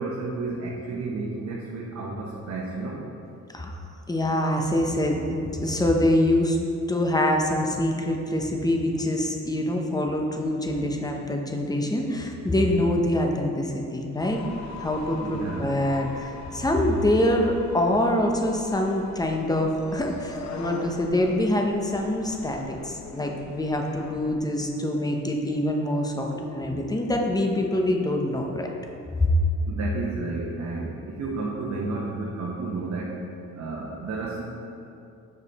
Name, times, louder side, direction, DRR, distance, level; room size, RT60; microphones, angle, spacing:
voice 1, 0.0-3.0 15.2-15.7 23.2-23.3 29.7-33.3 33.6-34.4, right 3 dB, 60° right, -4 dB, 1.0 m, -32 dB
voice 2, 4.1-6.6 6.9-14.4 14.8-28.7 29.2-29.3, left 1 dB, 15° left, 2 dB, 0.8 m, -25 dB
sound 1, 14.2-24.4, left 4 dB, 65° left, 0.8 m, -41 dB
sound 2, 24.0-30.3 30.7-30.8, right 3 dB, 35° right, 0.8 m, -41 dB
7.2 x 5.3 x 4.1 m, 2.6 s
cardioid pair, 90°, 30 cm